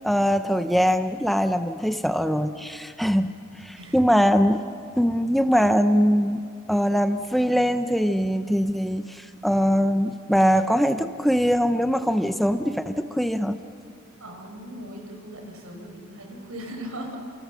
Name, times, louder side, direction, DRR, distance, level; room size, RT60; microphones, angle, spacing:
voice 1, 0.0-3.3 3.6-4.6 5.0-6.4 6.7-13.6, equal, ahead, 8 dB, 0.7 m, -22 dB
voice 2, 14.2-17.2, equal, 80° right, 2 dB, 6.0 m, -38 dB
29.5 x 28.5 x 6.3 m, 2.2 s
head